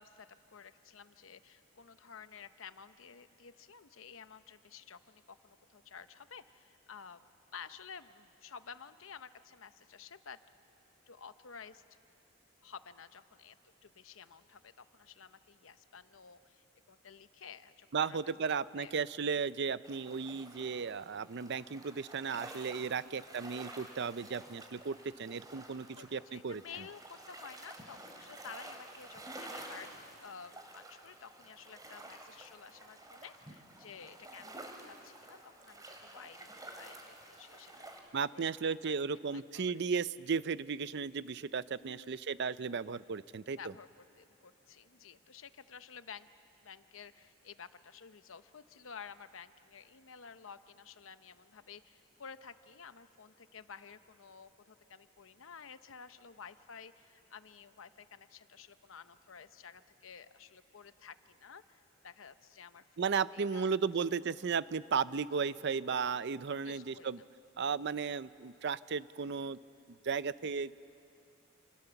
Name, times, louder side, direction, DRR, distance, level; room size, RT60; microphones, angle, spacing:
voice 1, 0.0-10.4 11.1-11.8 12.6-13.5 13.8-18.3 18.8-18.9 23.0-23.3 26.0-37.9 38.3-38.9 39.3-39.8 41.8-42.3 43.6-43.9 44.2-46.3 46.6-63.7 66.6-67.3, left 6 dB, 85° left, 12 dB, 0.8 m, -52 dB
voice 2, 17.9-26.6 38.1-43.6 63.0-67.2 67.6-69.6 70.0-70.7, right 5 dB, 60° right, 16 dB, 0.6 m, -35 dB
sound 1, 19.8-38.0, right 1 dB, 20° right, 2.9 m, -51 dB
28.0 x 27.5 x 7.0 m, 2.6 s
head